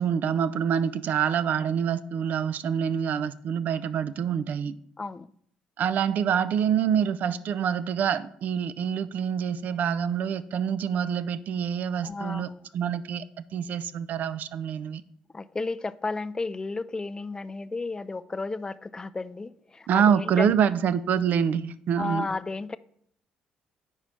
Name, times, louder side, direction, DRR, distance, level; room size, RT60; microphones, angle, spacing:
voice 1, 0.0-4.7 5.8-13.2 13.5-15.0 19.9-22.3, right 8 dB, 60° right, 0.4 m, -26 dB
voice 2, 5.0-5.3 12.0-12.7 15.3-20.6 22.0-22.8, left 3 dB, 20° left, 0.3 m, -33 dB
4.8 x 4.5 x 5.5 m
supercardioid pair, 65°, 3 cm